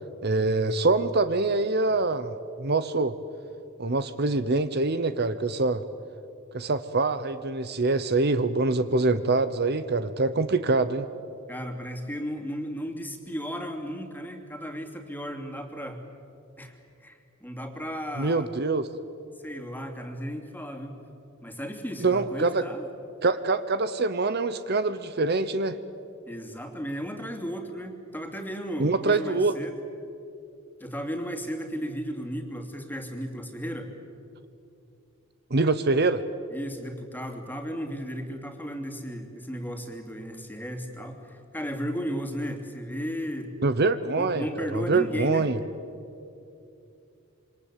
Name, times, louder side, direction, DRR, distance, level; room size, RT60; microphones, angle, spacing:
voice 1, 0.2-3.1 3.8-5.8 6.5-11.1 18.2-18.9 22.0-22.6 23.2-25.8 28.8-29.5 35.5-36.2 43.6-45.6, right 3 dB, 50° right, 11 dB, 0.9 m, -25 dB
voice 2, 11.5-16.0 16.6-18.5 19.4-21.0 21.4-22.9 26.3-29.8 30.8-33.9 36.5-43.5 44.2-45.5, equal, 10° left, 4 dB, 2.8 m, -35 dB
27.0 x 25.0 x 8.4 m, 2.6 s
head